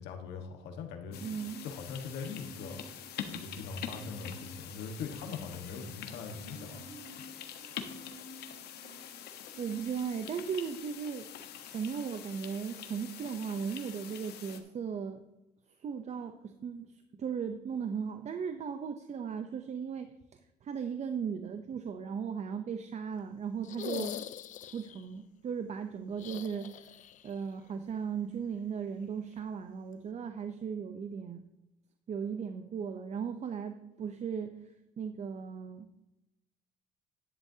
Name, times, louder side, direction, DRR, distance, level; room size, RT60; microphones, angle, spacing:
voice 1, 0.0-1.2 1.6-2.8 3.3-6.9, left 5 dB, 90° left, 5 dB, 1.5 m, -41 dB
sound 1, 1.1-14.6, left 9 dB, 75° left, 1.2 m, -45 dB
Marimba xylophone, 1.1-1.8 2.1-3.6 3.9-4.6 5.0-9.2 9.5-10.3 10.6-10.8, equal, 75° right, 2.1 m, -52 dB
voice 2, 1.2-1.6 9.6-11.2 11.7-15.2 15.8-20.1 20.6-24.1 24.7-26.9 27.2-31.4 32.1-34.5 35.0-35.9, right 7 dB, 40° right, 8 dB, 0.7 m, -37 dB
sound 2, 23.6-25.0 26.1-27.3 27.6-27.7 29.3-29.4, left 10 dB, 50° left, 0.4 m, -42 dB
11.0 x 10.5 x 2.8 m, 0.95 s
cardioid pair, 110°, 17 cm